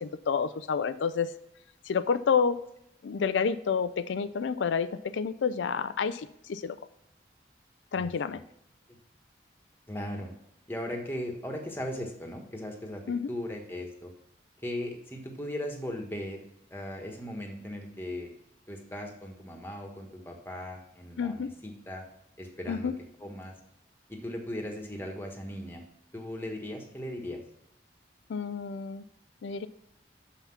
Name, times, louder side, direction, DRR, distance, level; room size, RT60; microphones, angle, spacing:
voice 1, 0.0-1.3 1.9-2.6 3.0-6.8 7.9-8.4 13.1-13.3 21.2-21.5 22.7-22.9 28.3-29.0 29.4-29.7, left 6 dB, 90° left, 12 dB, 0.4 m, -29 dB
voice 2, 7.9-8.4 9.9-10.3 10.7-13.0 13.3-14.1 14.6-16.4 16.7-18.3 18.7-22.0 22.4-22.9 23.2-23.5 24.1-25.8 26.1-27.4, left 1 dB, 10° left, 2 dB, 1.3 m, -38 dB
6.9 x 5.8 x 5.7 m, 0.77 s
head